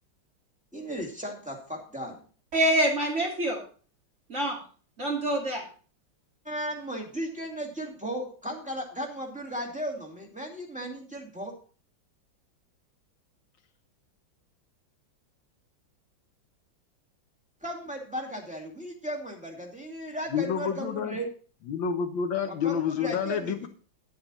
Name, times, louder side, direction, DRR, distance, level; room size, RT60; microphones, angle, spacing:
voice 1, 0.7-2.2 6.4-11.5 17.6-21.3 22.5-23.7, right 1 dB, 5° right, -1 dB, 2.3 m, -36 dB
voice 2, 2.5-3.6 4.3-4.6 5.0-5.6, right 1 dB, 35° right, -1 dB, 2.8 m, -25 dB
voice 3, 20.3-21.2 21.7-23.7, left 7 dB, 70° left, 8 dB, 1.6 m, -29 dB
11.0 x 8.0 x 4.1 m, 0.40 s
omnidirectional pair, 2.2 m